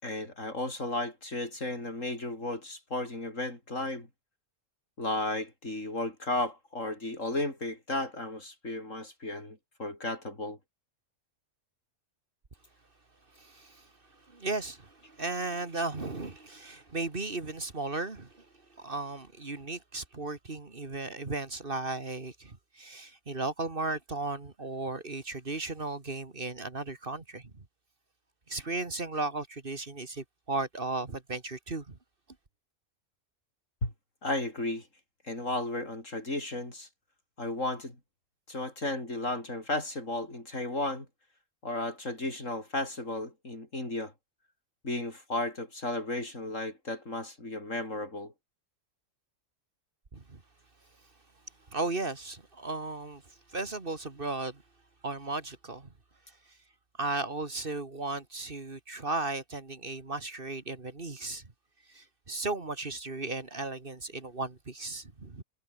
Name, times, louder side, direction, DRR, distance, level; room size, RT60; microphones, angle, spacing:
voice 1, 0.0-4.1 5.0-10.6 33.8-33.9 34.2-34.9 35.2-36.9 37.4-38.0 38.5-41.1 41.6-44.1 44.8-48.3, left 2 dB, 75° left, 6.9 m, -34 dB
voice 2, 13.4-13.9 14.3-18.5 18.7-27.5 28.5-32.0 50.1-50.4 51.7-53.2 53.5-54.6 55.0-55.9 57.0-61.4 61.9-65.4, right 3 dB, 45° right, 2.3 m, -35 dB
omnidirectional pair, 1.3 m